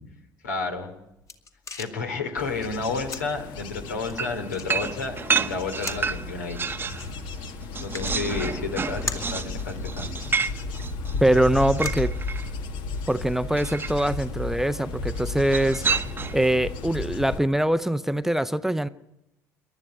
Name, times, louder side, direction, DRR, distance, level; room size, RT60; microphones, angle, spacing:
voice 1, 0.4-0.9 1.7-6.6 7.8-10.1 10.4-10.6, left 4 dB, 75° left, 5 dB, 2.9 m, -31 dB
sound 1, 0.7-12.8, left 4 dB, 35° left, 2.3 m, -43 dB
Bird / Insect / Wind, 2.4-17.4, left 3 dB, 60° left, 1.8 m, -34 dB
sound 2, 4.2-7.1 7.4-12.5 13.5-14.1 15.4-16.5, right 5 dB, 25° right, 1.0 m, -30 dB
voice 2, 11.2-12.1 13.1-15.8 16.3-18.9, right 1 dB, 5° right, 13 dB, 0.8 m, -23 dB
28.5 x 12.0 x 9.6 m, 0.89 s
figure-of-eight pair, 55°, 9 cm